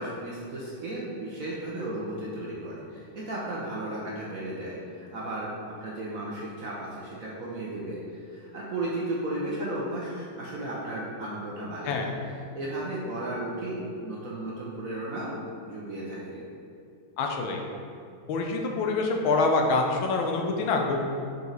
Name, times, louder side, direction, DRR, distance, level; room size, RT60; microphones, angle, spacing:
voice 1, 0.0-12.1 12.5-15.3 15.7-16.4, right 1 dB, 55° right, -5 dB, 1.0 m, -34 dB
voice 2, 17.2-17.6 18.3-21.0, left 3 dB, 80° left, 2 dB, 1.5 m, -25 dB
5.4 x 4.6 x 3.9 m, 2.4 s
omnidirectional pair, 2.2 m